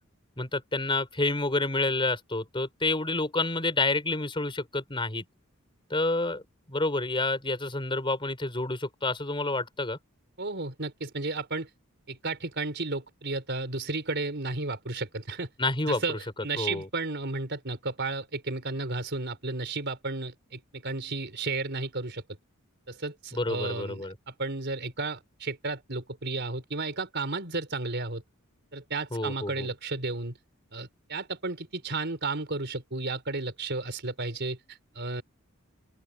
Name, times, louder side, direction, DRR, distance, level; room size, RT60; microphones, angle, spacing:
voice 1, 0.4-5.2 5.9-6.4 6.7-10.0 15.6-16.2 16.6-16.9 23.3-24.1 29.1-29.7, left 2 dB, 25° left, 4.6 m, -29 dB
voice 2, 10.4-11.7 12.1-15.5 15.9-22.2 22.9-28.2 28.7-30.4 30.7-35.2, right 3 dB, 55° right, 4.4 m, -33 dB
open air
head